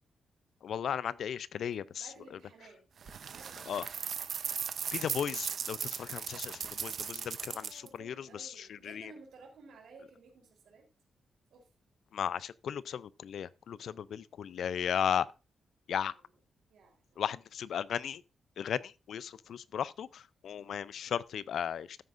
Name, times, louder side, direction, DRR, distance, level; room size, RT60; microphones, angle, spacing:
voice 1, 0.6-2.1 3.7-3.9 4.9-9.1 12.1-15.3 15.9-16.1 17.2-18.2 18.6-22.0, left 8 dB, 70° left, 0.4 m, -36 dB
voice 2, 1.9-3.9 7.5-10.9 11.5-11.7 15.9-16.1 16.7-17.2, right 4 dB, 80° right, 3.5 m, -56 dB
sound 1, 3.0-7.9, right 7 dB, 55° right, 0.7 m, -38 dB
13.0 x 9.3 x 2.5 m
wide cardioid pair, 155°, 0 cm